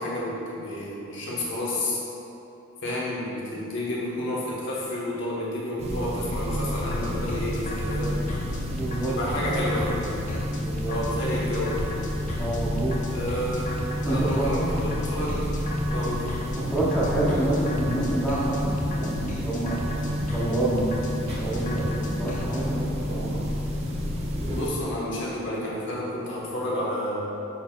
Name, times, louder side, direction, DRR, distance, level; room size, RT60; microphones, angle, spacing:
voice 1, 0.0-2.0 2.8-8.3 9.1-10.0 10.9-11.8 13.1-13.8 14.0-15.5 15.9-16.3 24.5-27.2, left 1 dB, 60° left, -6 dB, 1.0 m, -30 dB
sound 1, 5.8-24.7, equal, 30° right, 0.4 m, -30 dB
sound 2, 6.8-22.6, left 1 dB, 40° left, 0.4 m, -37 dB
voice 2, 8.7-9.1 10.6-10.9 12.4-13.0 14.1-14.6 16.5-19.8 20.3-23.4, right 1 dB, 5° left, -8 dB, 0.7 m, -28 dB
5.8 x 4.0 x 2.2 m, 3.0 s
head